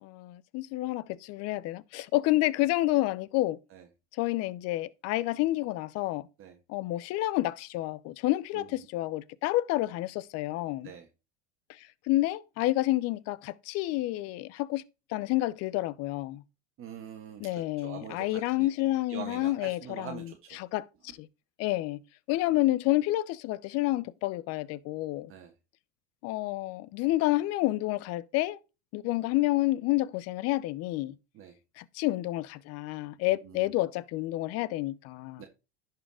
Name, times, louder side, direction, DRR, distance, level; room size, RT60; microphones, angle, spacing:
voice 1, 0.0-3.6 4.2-6.3 6.7-10.9 12.1-14.8 15.1-16.4 17.4-20.9 21.2-21.3 21.6-22.0 22.3-25.3 26.2-28.6 28.9-31.2 31.8-35.5, left 17 dB, 50° left, 0.7 m, -29 dB
voice 2, 16.8-18.7 19.1-20.6 25.3-25.5 31.3-31.6 33.3-33.7 35.4-35.5, right 8 dB, 40° right, 1.6 m, -44 dB
11.0 x 4.6 x 4.8 m
hypercardioid pair, 90°, 31 cm